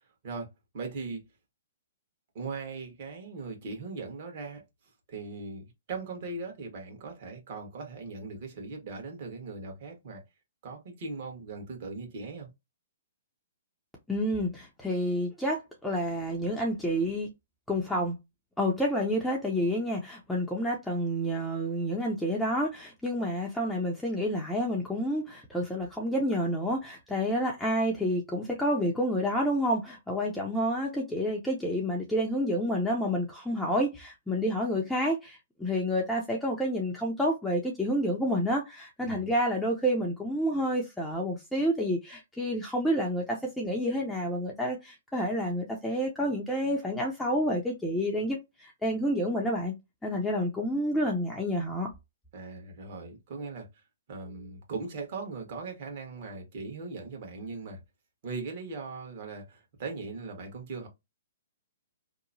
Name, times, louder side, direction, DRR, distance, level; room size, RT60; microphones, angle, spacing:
voice 1, 0.7-1.2 2.3-4.6 5.1-10.2 10.6-12.5 39.0-39.3 52.3-53.8 54.1-57.8 58.2-60.9, right 4 dB, 50° right, 1.2 m, -39 dB
voice 2, 14.1-17.3 17.7-18.2 18.6-49.7 50.0-51.9, equal, 5° left, 0.5 m, -29 dB
2.9 x 2.0 x 2.6 m
hypercardioid pair, 135°, 0 cm